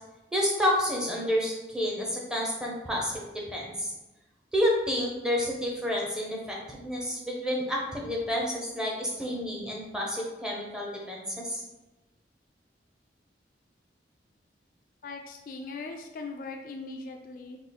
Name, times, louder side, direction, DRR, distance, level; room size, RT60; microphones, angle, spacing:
voice 1, 0.3-3.9 4.5-11.6, equal, 5° right, -3 dB, 0.6 m, -29 dB
voice 2, 15.0-17.6, left 3 dB, 50° left, 3 dB, 0.3 m, -40 dB
3.6 x 2.4 x 4.1 m, 1.0 s
head